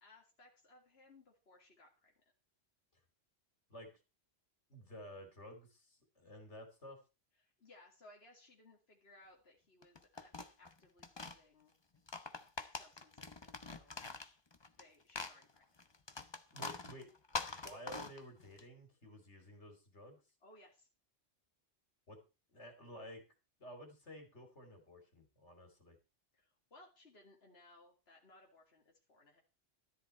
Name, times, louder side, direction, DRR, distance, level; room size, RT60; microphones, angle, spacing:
voice 1, 0.0-2.1 7.4-11.8 12.7-14.1 14.7-15.8 20.4-20.9 26.3-29.4, left 2 dB, 65° left, 0 dB, 2.5 m, -63 dB
voice 2, 3.7-4.0 4.7-7.0 16.5-17.1 17.5-20.2 22.1-22.2 22.5-23.2 23.6-26.0, equal, 85° left, 5 dB, 3.4 m, -53 dB
sound 1, 9.8-11.4 11.9-14.8 15.1-18.6, left 3 dB, 25° left, 0.9 m, -44 dB
13.5 x 10.0 x 4.4 m, 0.30 s
omnidirectional pair, 1.1 m